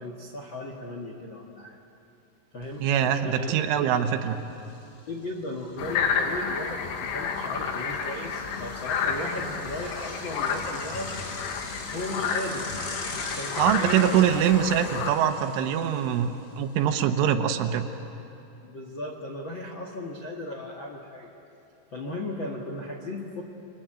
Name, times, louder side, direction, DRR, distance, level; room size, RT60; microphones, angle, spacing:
voice 1, 0.0-1.8 2.5-3.9 5.1-11.1 11.9-14.3 18.6-21.3 21.9-23.4, left 1 dB, 85° left, 0 dB, 1.0 m, -36 dB
Bicycle, 2.6-2.7 3.1-16.9, left 2 dB, 35° left, 2.7 m, -42 dB
voice 2, 2.8-4.4 13.6-17.9, right 9 dB, 85° right, 5 dB, 3.6 m, -23 dB
sound 1, 5.8-15.1, left 6 dB, 70° left, 3.5 m, -31 dB
30.0 x 21.5 x 9.0 m, 2.7 s
omnidirectional pair, 5.5 m